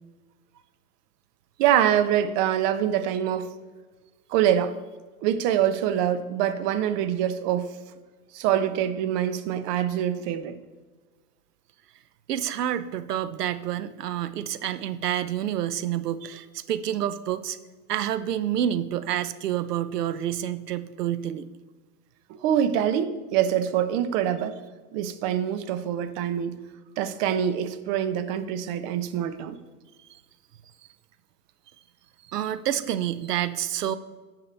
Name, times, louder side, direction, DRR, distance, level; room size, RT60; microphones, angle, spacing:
voice 1, 1.6-3.5 4.3-4.7 5.2-7.7 8.3-10.6 22.3-24.6 24.9-26.6 27.0-29.6, right 10 dB, 50° right, 1.0 m, -25 dB
voice 2, 12.3-17.6 17.9-21.5 32.3-34.0, right 11 dB, 90° right, 0.7 m, -28 dB
17.0 x 5.8 x 3.4 m
hypercardioid pair, 105°, 46 cm